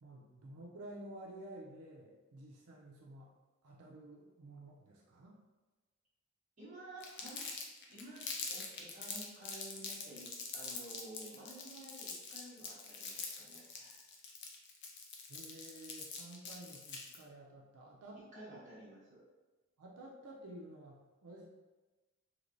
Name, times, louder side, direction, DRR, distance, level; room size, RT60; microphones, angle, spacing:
voice 1, 0.0-3.3 3.6-5.4 15.3-18.4 19.8-21.5, right 1 dB, 90° right, -3 dB, 0.5 m, -52 dB
voice 2, 6.6-7.4 7.9-14.0 18.3-19.2, right 1 dB, 35° right, -10 dB, 1.4 m, -52 dB
Crumpling crinkling, 7.0-17.2, left 5 dB, 50° left, 0.5 m, -44 dB
3.2 x 2.8 x 2.6 m, 1.2 s
head